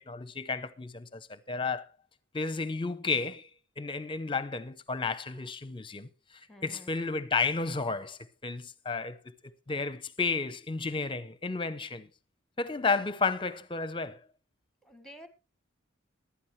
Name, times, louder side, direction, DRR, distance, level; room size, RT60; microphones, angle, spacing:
voice 1, 0.0-1.8 2.3-3.5 3.8-6.1 6.6-9.2 9.7-12.1 12.6-14.2, left 4 dB, 25° left, 0.7 m, -32 dB
voice 2, 6.5-6.9 14.8-15.3, equal, ahead, 1.4 m, -50 dB
15.0 x 11.5 x 3.2 m
head